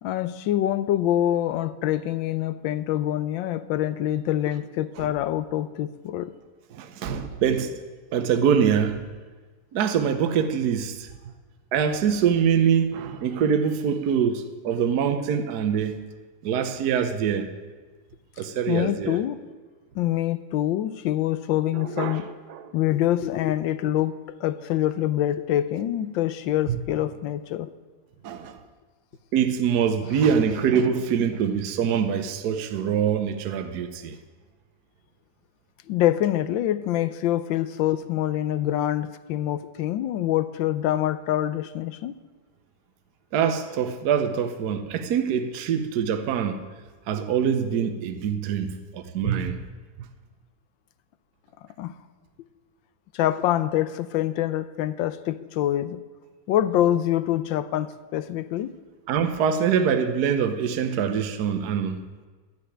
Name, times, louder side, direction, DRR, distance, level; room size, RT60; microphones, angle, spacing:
voice 1, 0.0-6.3 18.7-19.4 19.9-22.3 22.7-27.7 35.9-42.2 51.8-52.0 53.1-56.0 56.5-58.8, left 12 dB, 85° left, 1.4 m, -25 dB
voice 2, 6.7-7.8 8.1-9.0 9.7-11.1 11.7-16.0 16.4-17.5 18.4-19.2 21.8-22.7 26.7-26.8 28.2-28.6 29.3-34.2 43.3-46.6 47.1-49.6 59.1-62.0, right 7 dB, 60° right, 1.3 m, -24 dB
12.5 x 6.8 x 9.7 m
omnidirectional pair, 2.1 m